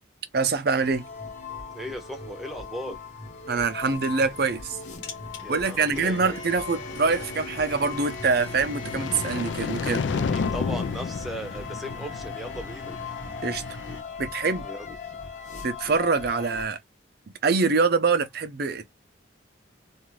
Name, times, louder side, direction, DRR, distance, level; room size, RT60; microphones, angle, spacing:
voice 1, 0.3-1.1 3.5-4.8 5.5-10.0 13.4-13.6 14.2-14.7 15.6-16.8 17.4-18.9, right 4 dB, 55° right, 0.5 m, -24 dB
sound 1, 0.7-16.7, left 5 dB, 40° left, 1.0 m, -39 dB
voice 2, 1.7-3.0 5.4-6.4 10.1-12.9 14.6-14.9, equal, ahead, 0.7 m, -37 dB
sound 2, 3.5-14.0, left 2 dB, 85° left, 1.0 m, -41 dB
sound 3, 8.3-12.5, left 5 dB, 70° left, 0.4 m, -31 dB
2.5 x 2.4 x 3.1 m
head